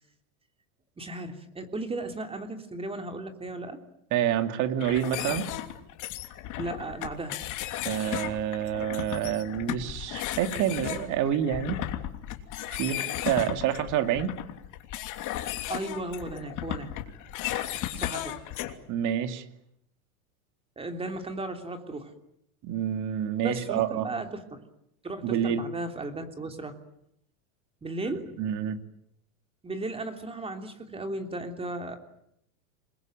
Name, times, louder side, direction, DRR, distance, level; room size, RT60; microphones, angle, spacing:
voice 1, 1.0-3.8 6.6-7.4 15.7-16.9 18.0-18.4 20.8-22.1 23.4-24.6 25.0-26.7 27.8-28.3 29.6-32.0, right 2 dB, 15° right, 6 dB, 3.2 m, -35 dB
voice 2, 4.1-5.5 7.8-11.8 12.8-14.4 18.9-19.4 22.6-24.1 25.2-25.6 28.4-28.8, right 10 dB, 40° right, 8 dB, 2.6 m, -28 dB
sound 1, 4.8-18.7, left 13 dB, 45° left, 3.1 m, -35 dB
27.5 x 22.0 x 9.2 m, 0.75 s
supercardioid pair, 130°, 44 cm